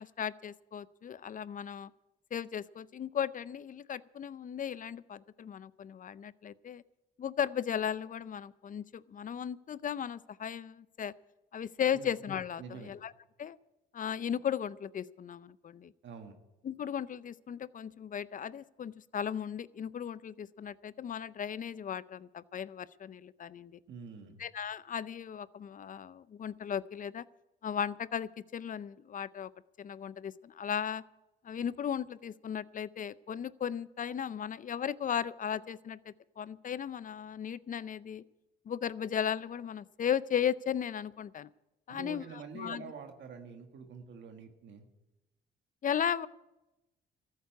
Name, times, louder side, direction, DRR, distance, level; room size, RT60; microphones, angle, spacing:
voice 1, 0.0-1.9 2.3-6.8 7.2-11.1 11.5-13.1 13.4-13.6 13.9-15.9 16.6-23.8 24.4-27.2 27.6-29.5 29.8-31.0 31.4-38.2 38.7-41.5 41.9-42.2 42.5-42.9 45.8-46.3, left 8 dB, 40° left, 19 dB, 0.5 m, -36 dB
voice 2, 12.6-12.9 16.0-16.4 23.9-24.4 41.9-44.9, right 5 dB, 65° right, 5 dB, 1.7 m, -46 dB
14.0 x 8.2 x 9.4 m, 0.98 s
cardioid pair, 90°, 20 cm